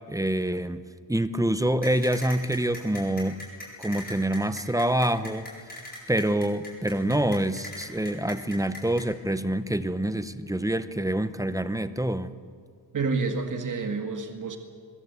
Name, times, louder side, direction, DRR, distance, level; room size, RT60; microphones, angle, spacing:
voice 1, 0.1-0.8 1.1-3.4 3.8-5.8 6.1-12.4, right 1 dB, 10° right, 12 dB, 0.7 m, -26 dB
sound 1, 1.8-9.0, left 2 dB, 20° left, 7.9 m, -39 dB
voice 2, 12.9-14.6, right 4 dB, 45° right, 5 dB, 2.0 m, -29 dB
22.5 x 22.0 x 8.2 m, 2.1 s
wide cardioid pair, 160°, 42 cm